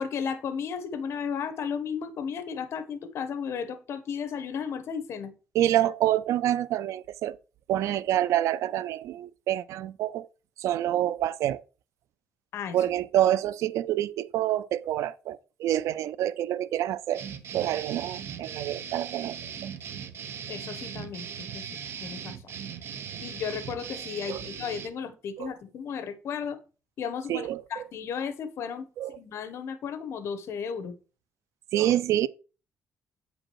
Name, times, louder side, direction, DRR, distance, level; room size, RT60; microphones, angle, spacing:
voice 1, 0.0-5.3 12.5-12.8 20.5-21.7 22.0-22.3 23.2-26.6 27.0-30.9, left 6 dB, 60° left, 1.3 m, -34 dB
voice 2, 5.5-7.4 7.7-10.3 10.6-11.6 12.7-17.3 17.5-19.7 24.3-24.4 25.4-25.5 27.3-27.6 29.0-29.2 31.7-32.3, right 12 dB, 80° right, 0.5 m, -27 dB
sound 1, 17.1-24.9, right 7 dB, 55° right, 0.9 m, -39 dB
8.5 x 5.1 x 4.6 m
cardioid pair, 150°, 5 cm